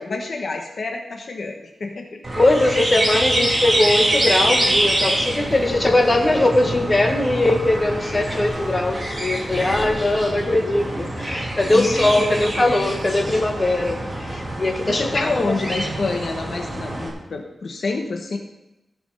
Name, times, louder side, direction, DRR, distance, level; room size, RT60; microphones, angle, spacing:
voice 1, 0.0-2.2 11.7-12.5 14.8-18.4, left 3 dB, 60° left, 3 dB, 1.1 m, -28 dB
sound 1, 2.2-17.1, right 1 dB, 20° right, 3.1 m, -25 dB
voice 2, 2.4-15.5, left 2 dB, 25° left, 2 dB, 1.7 m, -20 dB
sound 2, 5.1-14.2, equal, ahead, 3.2 m, -35 dB
15.5 x 6.0 x 5.6 m, 0.94 s
wide cardioid pair, 130°, 0 cm